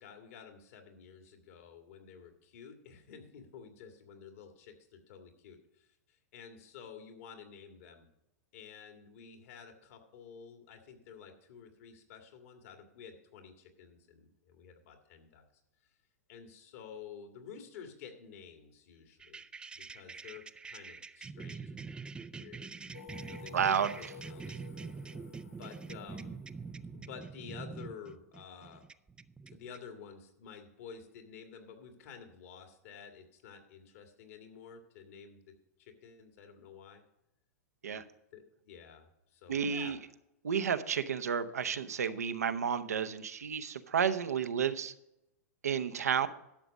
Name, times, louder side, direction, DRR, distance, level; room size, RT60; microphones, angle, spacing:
voice 1, 0.0-8.1 8.5-15.4 16.3-19.4 19.7-21.9 22.3-22.9 23.2-24.6 25.4-26.4 26.9-28.8 29.5-35.5 35.8-37.0 37.9-38.1 38.3-40.0, left 7 dB, 60° left, 5 dB, 2.1 m, -51 dB
sound 1, 19.2-29.8, right 4 dB, 10° right, 0.4 m, -45 dB
Singing, 22.9-27.7, left 8 dB, 85° left, 1.9 m, -54 dB
voice 2, 23.5-23.9 37.8-38.0 39.5-40.0 40.4-44.9 45.6-46.3, right 7 dB, 80° right, 10 dB, 0.8 m, -31 dB
11.5 x 7.0 x 5.3 m, 0.86 s
hypercardioid pair, 105°, 8 cm